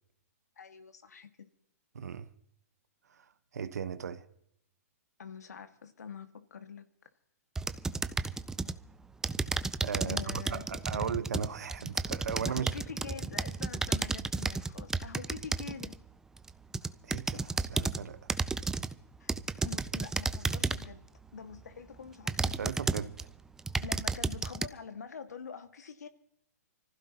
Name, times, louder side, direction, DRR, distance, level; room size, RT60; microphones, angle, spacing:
voice 1, 0.6-1.5 5.2-6.9 10.1-11.2 12.5-15.9 19.2-19.3 19.6-21.0 21.3-22.4 23.8-26.1, left 6 dB, 90° left, 1.9 m, -45 dB
voice 2, 1.9-2.3 3.1-4.2 9.8-12.7 17.0-18.2 22.4-23.3, right 7 dB, 80° right, 1.2 m, -37 dB
sound 1, 7.6-8.8 9.2-16.0 16.5-18.0 18.3-18.9 19.3-20.9 21.5-21.6 22.3-23.2 23.6-24.7, right 3 dB, 5° right, 0.5 m, -33 dB
25.5 x 15.5 x 2.9 m
hypercardioid pair, 140°, 9 cm